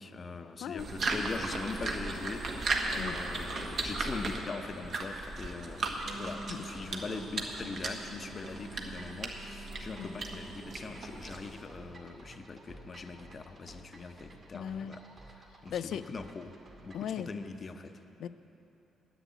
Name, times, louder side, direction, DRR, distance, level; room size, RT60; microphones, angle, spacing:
voice 1, 0.0-15.0 15.3-16.5 16.8-18.0, left 4 dB, 40° left, 7 dB, 0.7 m, -42 dB
sound 1, 0.8-11.6, right 3 dB, 60° right, 1.3 m, -37 dB
sound 2, 1.3-17.1, right 2 dB, 40° right, 2.1 m, -53 dB
Wind instrument woodwind instrument, 6.0-10.7, right 3 dB, 25° right, 1.5 m, -49 dB
voice 2, 14.5-14.9 15.7-16.0 16.9-17.3 18.2-18.3, left 9 dB, 75° left, 14 dB, 0.4 m, -37 dB
10.0 x 8.1 x 9.4 m, 3.0 s
cardioid pair, 90°, 0 cm